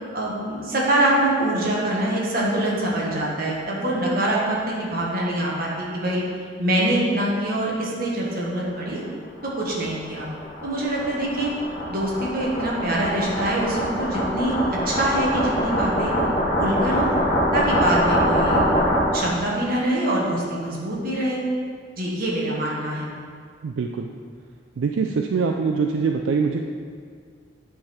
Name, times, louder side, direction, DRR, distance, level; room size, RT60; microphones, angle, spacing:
voice 1, 0.1-6.2 6.6-9.0 9.4-10.3 10.6-11.5 11.9-14.5 14.8-16.1 16.6-17.2 17.5-18.6 19.1-21.4 22.0-23.1, right 1 dB, 50° right, -4 dB, 1.4 m, -24 dB
sound 1, 9.4-19.4, equal, 30° left, 1.6 m, -24 dB
voice 2, 23.6-24.1 24.8-26.6, right 5 dB, 80° right, 3 dB, 0.4 m, -23 dB
9.2 x 3.9 x 4.3 m, 2.1 s
head